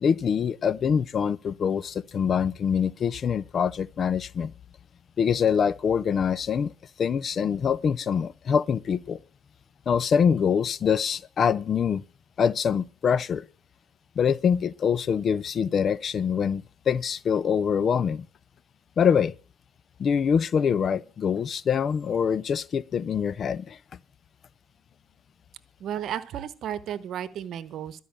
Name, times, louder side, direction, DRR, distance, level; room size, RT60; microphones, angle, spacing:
voice 1, 0.0-4.5 5.2-6.7 7.0-9.2 9.9-12.0 12.4-13.4 14.2-18.2 19.0-19.3 20.0-23.8, left 7 dB, 45° left, 0.4 m, -24 dB
voice 2, 25.8-28.0, right 10 dB, 55° right, 1.0 m, -33 dB
12.5 x 5.5 x 8.6 m
supercardioid pair, 85°, 0 cm